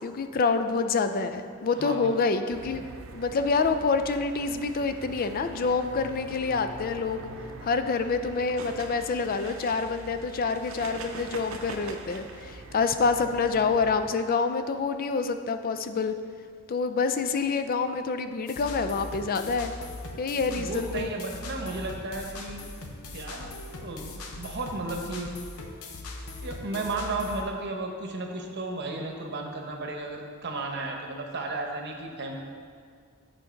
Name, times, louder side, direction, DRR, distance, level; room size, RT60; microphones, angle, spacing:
voice 1, 0.0-2.9 3.1-7.3 7.6-16.1 16.7-19.7 20.2-21.1, left 4 dB, 40° left, 9 dB, 0.4 m, -27 dB
voice 2, 1.7-2.1 20.6-22.6 23.1-23.5 23.8-25.3 26.4-32.4, right 2 dB, 50° right, 2 dB, 0.9 m, -34 dB
sound 1, 2.5-14.1, right 3 dB, 70° right, 0.6 m, -43 dB
sound 2, 18.5-27.4, left 2 dB, 85° left, 0.8 m, -40 dB
8.2 x 3.9 x 5.1 m, 2.1 s
head